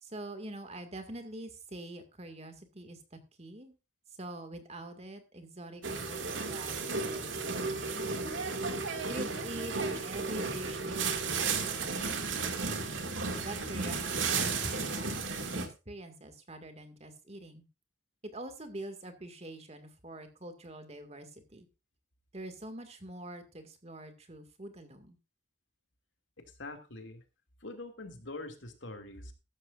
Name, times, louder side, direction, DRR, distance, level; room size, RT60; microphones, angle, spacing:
voice 1, 0.0-3.7 4.2-8.3 9.1-9.8 10.0-12.9 13.4-17.6 18.2-21.7 22.3-25.2, right 1 dB, 35° right, 7 dB, 2.1 m, -45 dB
sound 1, 5.8-15.7, right 4 dB, 85° right, 2.2 m, -34 dB
voice 2, 26.6-27.2 27.6-29.3, left 2 dB, 80° left, 6 dB, 2.5 m, -44 dB
14.0 x 13.0 x 2.5 m, 0.28 s
head